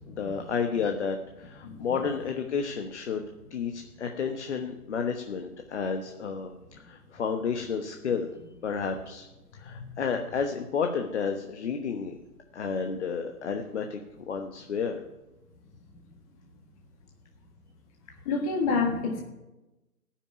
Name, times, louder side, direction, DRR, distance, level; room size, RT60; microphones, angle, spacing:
voice 1, 0.1-3.2 3.5-8.3 8.6-9.3 9.5-12.1 12.5-14.0 14.3-15.0, left 6 dB, 45° left, 5 dB, 1.2 m, -31 dB
voice 2, 1.6-2.0 9.7-9.9 18.2-19.2, left 4 dB, 20° left, 0 dB, 1.7 m, -28 dB
14.5 x 6.1 x 9.5 m, 1.0 s
hypercardioid pair, 150°, 46 cm